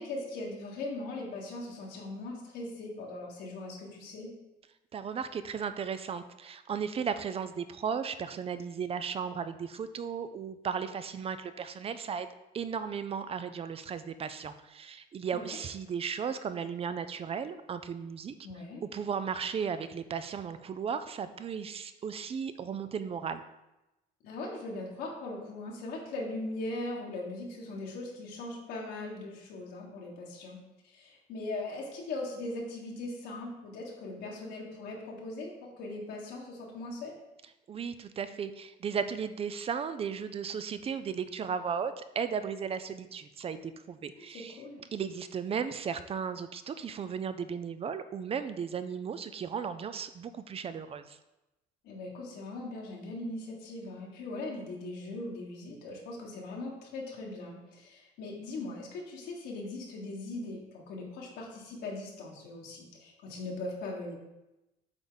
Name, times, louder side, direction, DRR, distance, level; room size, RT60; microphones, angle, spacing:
voice 1, 0.0-4.3 15.3-15.4 18.4-18.8 24.2-30.6 30.8-37.1 44.3-44.8 51.8-64.1, left 2 dB, 85° left, -2 dB, 1.6 m, -40 dB
voice 2, 4.9-12.3 12.5-18.3 18.8-23.4 37.7-44.6 44.9-51.2, right 6 dB, 35° right, 11 dB, 0.5 m, -35 dB
8.1 x 3.5 x 4.0 m, 0.97 s
cardioid pair, 110°, 17 cm